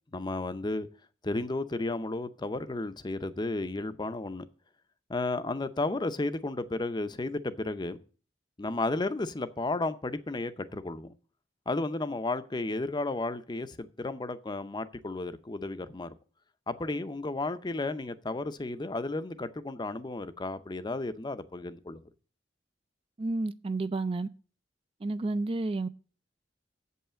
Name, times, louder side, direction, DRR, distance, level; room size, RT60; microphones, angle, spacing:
voice 1, 0.1-0.9 1.2-4.5 5.1-8.0 8.6-11.1 11.7-16.1 16.7-22.0, left 2 dB, 25° left, 0.6 m, -33 dB
voice 2, 23.2-24.3 25.0-25.9, right 2 dB, 30° right, 0.4 m, -30 dB
7.9 x 5.6 x 7.4 m
head